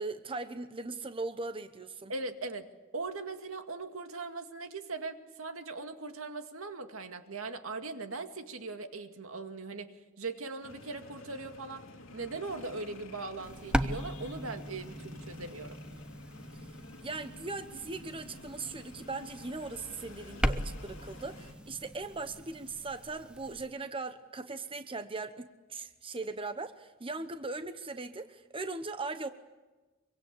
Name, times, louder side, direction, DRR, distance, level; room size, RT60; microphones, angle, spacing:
voice 1, 0.0-2.1 16.6-16.7 17.0-29.3, right 3 dB, 25° right, 9 dB, 1.0 m, -39 dB
voice 2, 2.1-11.8 12.1-15.8, right 3 dB, 75° right, 7 dB, 2.2 m, -40 dB
sound 1, 10.6-21.5, left 2 dB, 65° left, 2.8 m, -51 dB
sound 2, 13.4-23.7, equal, 5° right, 1.0 m, -38 dB
25.0 x 24.0 x 8.4 m, 1.2 s
head